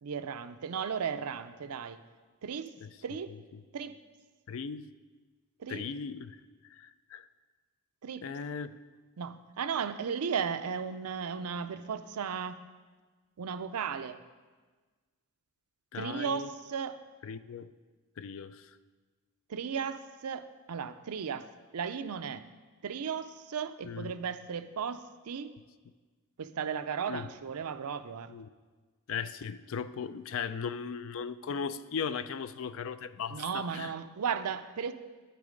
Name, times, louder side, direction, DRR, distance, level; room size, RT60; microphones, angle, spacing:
voice 1, 0.0-2.0 2.4-2.7 3.0-3.3 3.7-4.0 5.6-5.8 8.0-8.2 9.2-12.6 13.4-14.2 15.9-17.0 19.5-21.5 21.7-22.5 22.8-25.5 26.4-28.3 33.3-34.9, right 7 dB, 85° right, 11 dB, 0.5 m, -35 dB
voice 2, 4.5-4.9 5.7-6.4 6.7-7.3 8.2-8.8 15.9-16.5 17.2-17.7 18.2-18.7 23.8-24.2 27.1-27.3 28.3-28.5 29.1-33.9, left 6 dB, 60° left, 14 dB, 0.4 m, -37 dB
9.6 x 6.8 x 5.1 m, 1.4 s
head